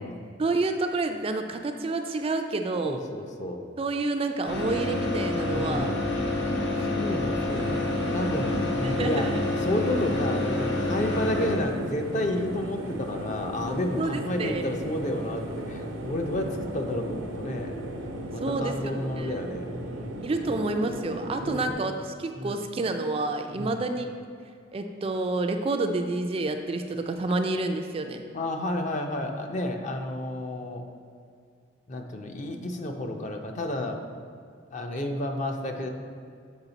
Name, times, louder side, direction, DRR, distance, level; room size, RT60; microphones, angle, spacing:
voice 1, 0.4-3.0 3.8-5.9 8.8-9.4 14.0-14.6 18.4-19.3 20.2-24.1 24.7-28.2, right 2 dB, 30° right, 5 dB, 0.3 m, -29 dB
voice 2, 2.8-3.6 5.5-6.2 6.8-7.9 8.1-9.3 9.6-17.8 18.3-20.6 21.4-21.6 22.4-22.6 23.5-23.8 28.3-30.8 31.9-34.0 34.7-35.9, left 1 dB, 40° left, 4 dB, 0.5 m, -31 dB
sound 1, 4.5-11.6, left 2 dB, 60° left, 0.9 m, -28 dB
sound 2, 7.5-21.7, right 1 dB, 85° right, 0.6 m, -37 dB
7.2 x 4.8 x 3.9 m, 2.3 s
head